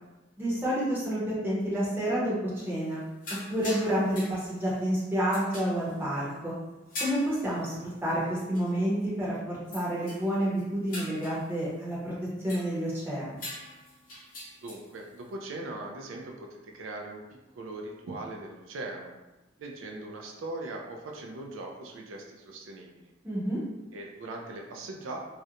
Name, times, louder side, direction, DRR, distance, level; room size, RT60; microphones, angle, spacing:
voice 1, 0.4-3.0 3.5-6.5 7.0-12.1 12.4-13.4 23.2-23.6, equal, 10° right, -8 dB, 0.7 m, -29 dB
sound 1, 2.6-2.9 3.2-4.9 5.3-6.3 6.9-8.3 8.5-8.7 9.0-9.1 9.7-10.3 10.6-13.0 13.4-15.0, left 1 dB, 45° left, 0.8 m, -42 dB
voice 2, 14.6-17.2 17.5-19.1 19.6-23.1 23.9-25.2, right 2 dB, 80° right, 1 dB, 0.4 m, -40 dB
2.4 x 2.1 x 2.8 m, 1.1 s
head